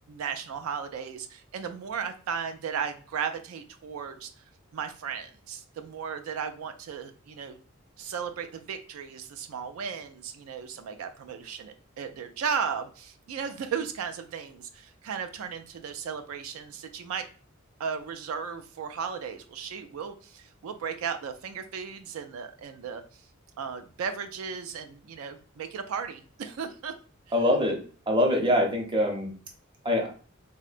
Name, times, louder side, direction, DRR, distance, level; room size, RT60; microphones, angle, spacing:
voice 1, 0.1-4.3 4.7-7.6 8.0-17.3 17.8-23.2 23.6-26.9, right 6 dB, 85° right, 7 dB, 0.3 m, -35 dB
voice 2, 27.3-29.3 29.8-30.1, left 1 dB, 25° right, 1 dB, 0.7 m, -24 dB
3.6 x 2.1 x 2.4 m, 0.40 s
head